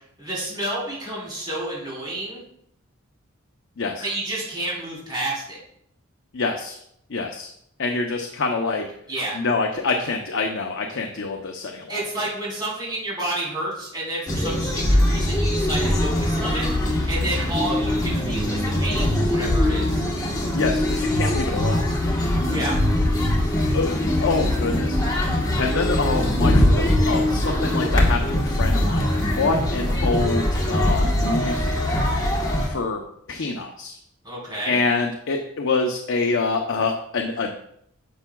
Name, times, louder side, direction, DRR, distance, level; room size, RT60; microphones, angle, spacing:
voice 1, 0.2-2.4 4.0-5.6 9.1-9.4 11.9-20.0 22.5-22.8 34.2-34.8, right 1 dB, 20° right, -6 dB, 3.4 m, -30 dB
voice 2, 6.3-6.8 7.1-7.5 7.8-8.8 9.3-12.0 20.5-21.9 23.7-25.3 25.6-32.0 32.7-33.0 33.3-34.0 34.7-37.5, left 3 dB, 60° left, 3 dB, 0.7 m, -26 dB
sound 1, 14.3-32.7, left 1 dB, 15° left, 1.2 m, -22 dB
10.5 x 6.9 x 2.3 m, 0.71 s
head